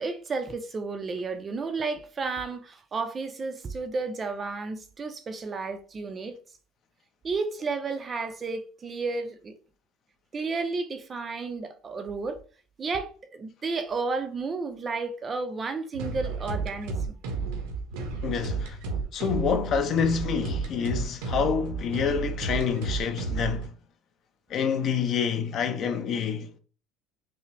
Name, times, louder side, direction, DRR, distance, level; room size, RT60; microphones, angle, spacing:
voice 1, 0.0-6.4 7.2-9.5 10.3-12.4 12.8-17.0, right 4 dB, 20° right, 0.4 m, -32 dB
sound 1, 15.9-23.7, right 4 dB, 90° right, 1.0 m, -32 dB
voice 2, 18.2-18.8 19.1-23.7 24.5-26.6, left 6 dB, 40° left, 0.5 m, -27 dB
5.5 x 2.0 x 3.3 m
cardioid pair, 160°, 0 cm